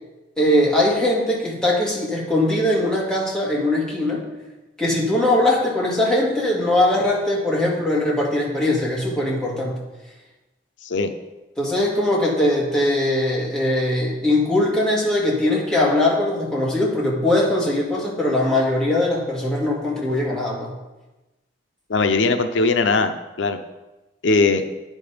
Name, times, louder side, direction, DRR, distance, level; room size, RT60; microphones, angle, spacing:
voice 1, 0.4-4.3 4.8-9.8 11.6-20.7, left 1 dB, 5° left, -5 dB, 2.0 m, -21 dB
voice 2, 21.9-23.6 24.2-24.6, left 3 dB, 90° left, 8 dB, 0.6 m, -19 dB
9.4 x 5.3 x 5.1 m, 1.1 s
head